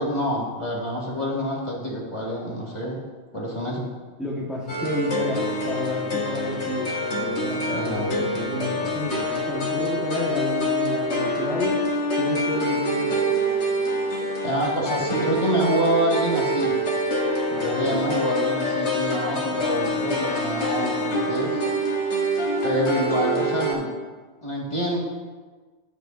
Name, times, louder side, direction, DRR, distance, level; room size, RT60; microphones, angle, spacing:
voice 1, 0.0-3.0 3.3-3.9 7.7-8.1 14.4-16.8 17.6-21.6 22.6-23.9 24.4-25.0, equal, 20° left, -5 dB, 1.8 m, -26 dB
voice 2, 4.2-11.9 12.2-13.2 14.7-15.4 17.5-18.1, left 1 dB, ahead, -6 dB, 1.1 m, -31 dB
sound 1, 4.7-23.7, equal, 50° left, 1.4 m, -26 dB
11.5 x 8.0 x 2.6 m, 1.4 s
omnidirectional pair, 1.5 m